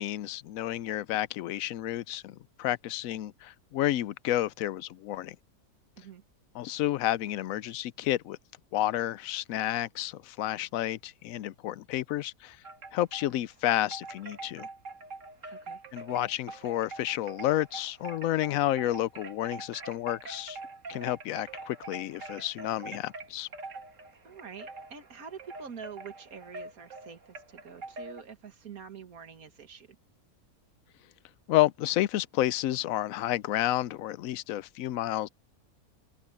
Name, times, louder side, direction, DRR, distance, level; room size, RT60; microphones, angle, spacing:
voice 1, 0.0-5.4 6.5-8.4 8.7-12.6 12.9-14.7 15.9-20.6 20.9-23.5 31.5-35.3, left 14 dB, 70° left, 0.9 m, -30 dB
Wind chime, 12.6-13.3 13.7-28.2, right 3 dB, 55° right, 2.2 m, -44 dB
voice 2, 15.5-15.8 24.2-30.0, right 6 dB, 70° right, 2.2 m, -46 dB
open air
omnidirectional pair, 1.6 m